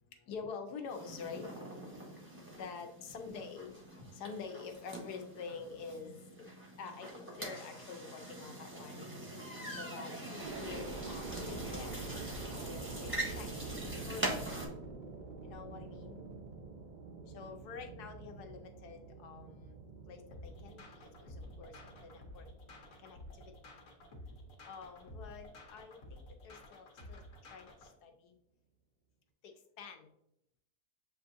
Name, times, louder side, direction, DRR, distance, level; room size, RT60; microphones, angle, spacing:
voice 1, 0.3-6.5 6.8-9.1 9.7-12.1 12.5-13.8 14.1-14.5 15.4-16.2 17.3-19.8 20.1-22.5 23.0-23.5 24.6-27.2 27.5-28.3 29.4-30.1, left 5 dB, 80° left, 4 dB, 1.2 m, -47 dB
sound 1, 0.9-14.7, right 1 dB, 15° right, 0.5 m, -43 dB
sound 2, 10.4-24.4 24.9-25.6, right 3 dB, 70° right, 0.4 m, -47 dB
sound 3, 20.3-27.9, left 1 dB, 60° left, 1.2 m, -52 dB
7.3 x 2.6 x 2.5 m, 0.78 s
omnidirectional pair, 1.7 m